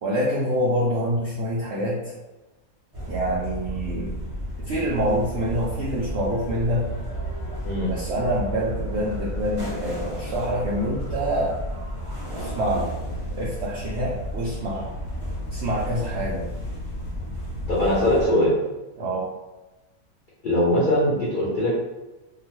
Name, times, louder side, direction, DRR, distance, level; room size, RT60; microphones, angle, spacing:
voice 1, 0.0-2.1 3.1-4.2 4.6-6.9 7.9-11.5 12.4-12.9 13.4-14.9 15.5-16.5 19.0-19.3, equal, 75° right, -5 dB, 0.6 m, -26 dB
sound 1, 2.9-18.2, equal, 35° right, 0.5 m, -32 dB
voice 2, 17.7-18.5 20.4-21.9, left 1 dB, 80° left, -7 dB, 0.4 m, -21 dB
2.8 x 2.1 x 3.0 m, 1.1 s
omnidirectional pair, 1.7 m